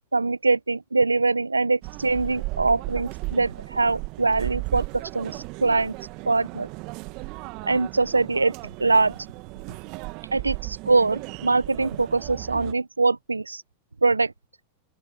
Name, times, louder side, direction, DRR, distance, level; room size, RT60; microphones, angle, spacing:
voice 1, 0.1-5.9 6.3-6.7 7.6-9.2 10.3-13.6 14.0-14.3, right 3 dB, 90° right, 1.1 m, -23 dB
sound 1, 1.8-12.7, right 26 dB, 45° right, 1.7 m, -35 dB
open air
figure-of-eight pair, 95°, 0 cm